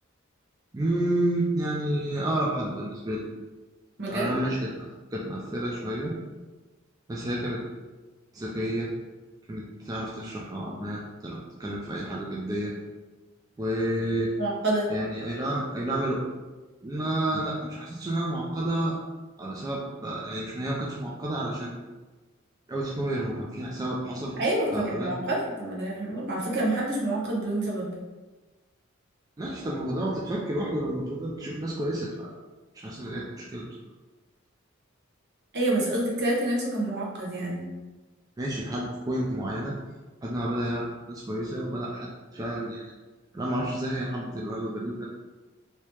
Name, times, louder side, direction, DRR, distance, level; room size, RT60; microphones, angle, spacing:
voice 1, 0.7-3.2 4.1-4.9 5.1-6.1 7.1-7.6 8.3-8.9 9.5-12.7 13.6-14.3 14.9-16.2 16.8-18.9 19.4-21.8 22.7-24.3 24.7-25.1 29.4-32.3 32.7-33.7 38.4-39.7 40.2-42.8 43.3-45.0, right 1 dB, 20° right, -4 dB, 0.4 m, -30 dB
voice 2, 4.0-4.4 14.4-14.9 24.4-27.9 35.5-37.6, right 1 dB, 55° right, -4 dB, 1.0 m, -27 dB
3.1 x 2.8 x 3.3 m, 1.2 s
head